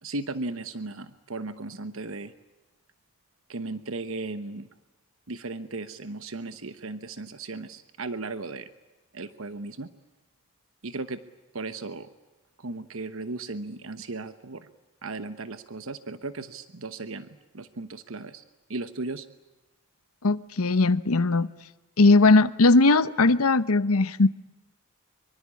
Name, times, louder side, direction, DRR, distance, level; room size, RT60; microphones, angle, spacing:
voice 1, 0.0-2.3 3.5-4.7 5.3-8.7 9.1-9.9 10.8-11.2 11.5-12.1 12.6-14.7 15.0-18.4 18.7-19.3, right 3 dB, 75° right, 11 dB, 1.1 m, -36 dB
voice 2, 20.2-21.5 22.0-24.3, left 3 dB, 85° left, 15 dB, 1.0 m, -19 dB
25.0 x 24.0 x 8.6 m, 1.1 s
head